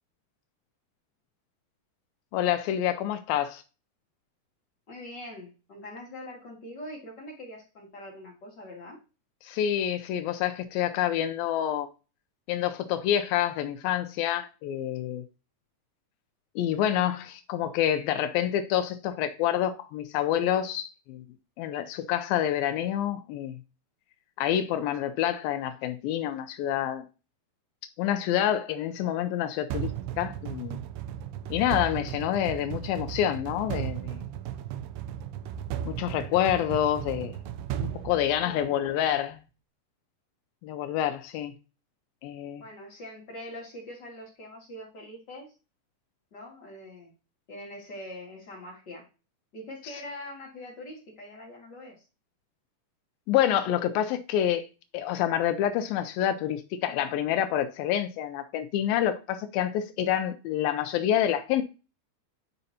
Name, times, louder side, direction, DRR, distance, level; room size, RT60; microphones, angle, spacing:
voice 1, 2.3-3.6 9.4-11.9 12.5-15.2 16.6-21.2 21.6-23.6 24.4-27.0 28.0-29.9 30.2-30.8 31.5-34.2 35.9-37.4 37.8-39.4 40.6-41.5 42.2-42.6 53.3-54.7 54.9-61.6, left 11 dB, 90° left, 2.0 m, -27 dB
voice 2, 4.9-9.0 38.4-38.8 42.6-45.5 46.3-47.1 47.5-49.1 49.5-52.0, left 1 dB, 40° left, 1.6 m, -43 dB
sound 1, 29.7-38.9, right 10 dB, 85° right, 2.7 m, -35 dB
9.8 x 5.3 x 2.8 m
omnidirectional pair, 4.9 m